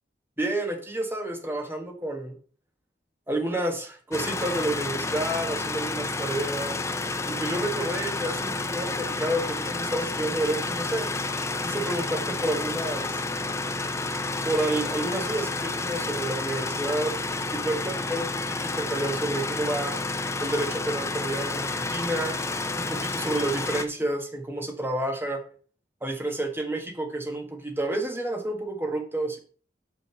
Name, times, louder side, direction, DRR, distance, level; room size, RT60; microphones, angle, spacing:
voice 1, 0.4-2.4 3.3-6.8 7.3-11.1 11.6-13.2 14.4-17.1 17.5-20.0 20.4-22.4 22.8-25.4 26.0-29.4, right 1 dB, 10° right, 3 dB, 1.6 m, -30 dB
sound 1, 4.1-23.9, left 3 dB, 15° left, 0.5 m, -30 dB
5.8 x 5.8 x 5.7 m, 0.41 s
head